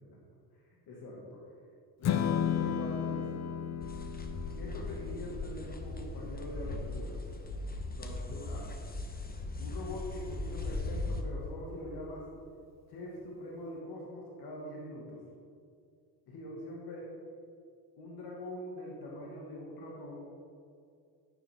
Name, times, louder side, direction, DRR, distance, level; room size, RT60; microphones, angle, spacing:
voice 1, 0.5-1.4 2.0-3.4 4.5-7.2 8.0-8.7 9.6-12.3 12.9-15.2 16.3-17.1 18.0-20.2, left 1 dB, 65° left, -3 dB, 1.9 m, -43 dB
Strum, 2.0-8.3, left 9 dB, 40° left, 0.5 m, -35 dB
sound 1, 3.8-11.2, left 2 dB, 20° left, 1.0 m, -39 dB
9.2 x 7.2 x 3.5 m, 2.3 s
supercardioid pair, 60°, 43 cm